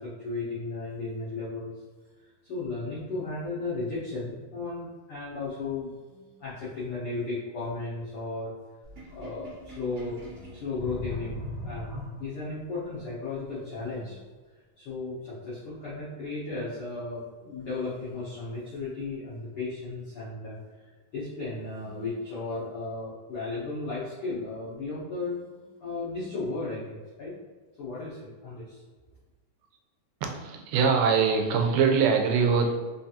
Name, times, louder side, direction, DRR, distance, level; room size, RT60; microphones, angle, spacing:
voice 1, 0.0-1.7 2.2-8.6 9.1-14.3 14.8-20.6 21.1-27.3 27.8-28.8, left 3 dB, 90° left, -10 dB, 1.2 m, -35 dB
Sink (filling or washing), 8.8-12.6, left 1 dB, 55° right, 0.9 m, -40 dB
voice 2, 30.2-32.7, right 5 dB, 90° right, 3 dB, 2.2 m, -23 dB
5.1 x 2.4 x 2.7 m, 1.4 s
omnidirectional pair, 3.8 m